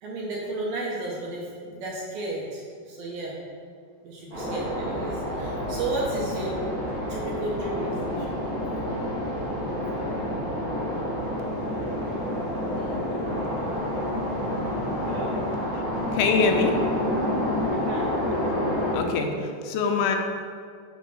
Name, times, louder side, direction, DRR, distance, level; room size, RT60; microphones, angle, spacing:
voice 1, 0.0-3.4 4.0-6.6 7.1-8.4 15.0-15.4 17.7-18.1, right 2 dB, 80° right, -3 dB, 2.1 m, -33 dB
sound 1, 4.3-18.9, left 1 dB, 40° right, 1.3 m, -28 dB
voice 2, 16.1-16.8 18.9-20.2, left 5 dB, 80° left, 3 dB, 3.0 m, -23 dB
10.0 x 3.5 x 6.1 m, 2.1 s
omnidirectional pair, 5.5 m